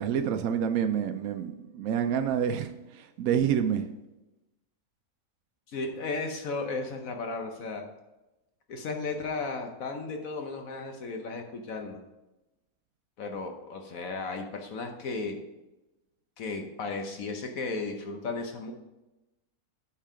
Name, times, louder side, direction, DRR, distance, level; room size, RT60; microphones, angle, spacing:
voice 1, 0.0-3.8, right 8 dB, 70° right, 6 dB, 1.0 m, -28 dB
voice 2, 5.7-7.8 8.7-12.0 13.2-15.4 16.4-18.7, left 3 dB, 65° left, 4 dB, 1.2 m, -35 dB
8.9 x 4.7 x 4.9 m, 1.0 s
omnidirectional pair, 1.6 m